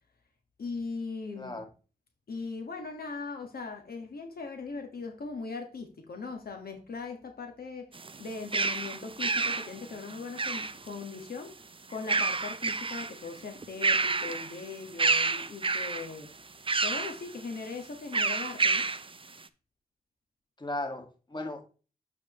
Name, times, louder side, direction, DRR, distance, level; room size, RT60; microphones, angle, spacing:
voice 1, 0.6-1.6 2.3-7.9 8.2-11.5 11.9-16.3 16.8-18.8, left 4 dB, 70° left, 1.5 m, -39 dB
voice 2, 1.4-1.7 20.6-21.7, left 2 dB, 30° left, 2.0 m, -36 dB
sound 1, 7.9-11.0 11.9-13.2 13.6-14.6 15.0-16.1 16.7-17.2 18.1-19.1, right 4 dB, 35° right, 0.6 m, -29 dB
8.3 x 4.7 x 3.1 m
cardioid pair, 40°, 16 cm